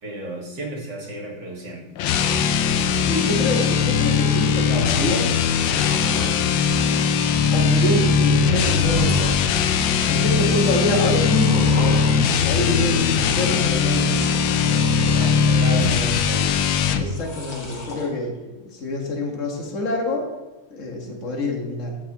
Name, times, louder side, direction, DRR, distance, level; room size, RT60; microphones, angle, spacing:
voice 1, 0.0-1.8 15.1-16.6, right 1 dB, 50° right, -3 dB, 2.6 m, -32 dB
sound 1, 2.0-17.1, left 6 dB, 70° left, 1.2 m, -20 dB
voice 2, 3.1-5.4 7.5-9.3 10.1-12.0 12.3-14.2 17.0-20.3 20.7-22.0, left 1 dB, 35° left, 0 dB, 1.8 m, -26 dB
sound 2, 5.3-6.4 6.8-7.2 7.5-7.6 8.2-9.4 9.9-10.4 11.1-12.2 13.9-15.3 15.7-16.3 17.0-18.1, left 1 dB, 55° left, 2.2 m, -35 dB
15.0 x 6.0 x 3.0 m, 1.2 s
omnidirectional pair, 2.4 m